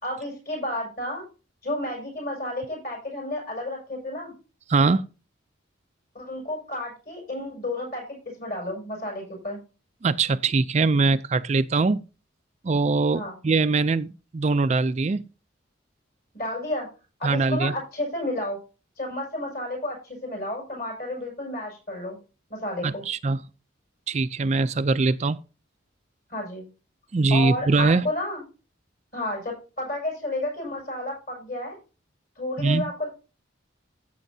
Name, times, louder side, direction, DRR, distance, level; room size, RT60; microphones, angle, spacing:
voice 1, 0.0-1.2 1.6-4.3 6.1-9.6 13.1-13.3 16.3-16.9 17.2-18.6 19.0-22.2 22.5-23.0 26.3-26.7 27.3-28.4 29.1-31.8 32.4-33.1, left 1 dB, 50° left, 6.7 m, -31 dB
voice 2, 4.7-5.1 10.0-12.0 12.6-15.3 17.2-17.7 22.8-23.4 24.1-25.4 27.1-28.0 32.6-32.9, right 3 dB, 35° right, 0.4 m, -22 dB
14.5 x 8.2 x 2.7 m
head